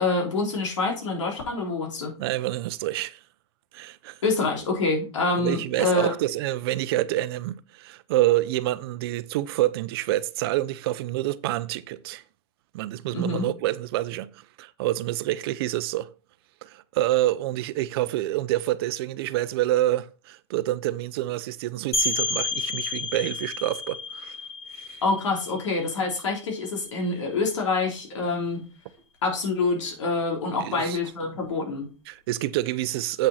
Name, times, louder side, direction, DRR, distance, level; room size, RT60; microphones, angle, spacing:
voice 1, 0.0-2.1 4.2-6.1 13.1-13.5 25.0-28.6 29.2-31.9, left 3 dB, 85° left, 3.7 m, -26 dB
voice 2, 2.2-3.2 3.7-4.2 5.4-12.2 12.7-16.1 16.6-24.4 24.7-25.0 30.6-31.0 32.1-33.3, right 15 dB, 55° right, 0.7 m, -27 dB
sound 1, 21.9-27.4, left 3 dB, 20° left, 2.8 m, -31 dB
7.8 x 6.2 x 4.3 m
hypercardioid pair, 135°, 15 cm